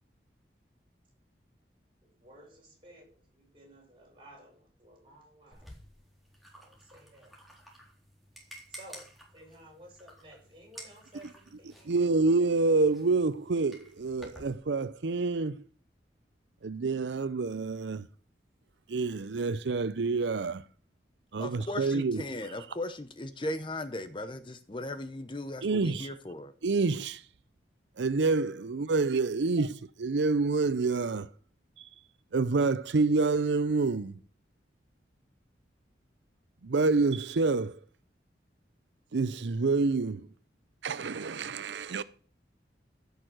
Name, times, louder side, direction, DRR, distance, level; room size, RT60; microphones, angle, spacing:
voice 1, 2.0-5.7 6.5-7.4 8.7-12.5 12.8-12.9, right 1 dB, 30° right, 6.2 m, -55 dB
sound 1, 5.5-14.5, equal, ahead, 3.8 m, -52 dB
voice 2, 11.9-15.7 16.6-18.1 18.9-20.7 21.3-22.2 22.5-22.8 25.6-26.1 26.6-27.3 28.0-31.3 31.8-31.9 32.3-34.1 36.6-37.8 39.1-40.3 40.8-42.0, right 3 dB, 90° right, 0.6 m, -28 dB
voice 3, 21.4-26.5, left 1 dB, 30° left, 0.8 m, -37 dB
15.5 x 6.6 x 6.2 m
head